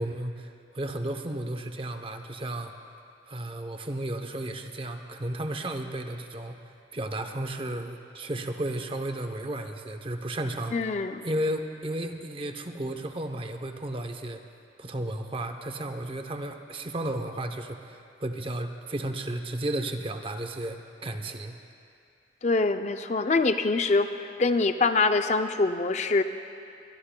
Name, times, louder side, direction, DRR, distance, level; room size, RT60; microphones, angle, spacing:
voice 1, 0.0-2.7 3.3-6.6 6.9-10.9 11.2-14.4 14.8-21.5, right 1 dB, 30° right, 6 dB, 0.7 m, -33 dB
voice 2, 10.7-11.2 22.4-26.2, left 3 dB, 40° left, 8 dB, 0.4 m, -24 dB
23.0 x 21.5 x 2.2 m, 2.5 s
head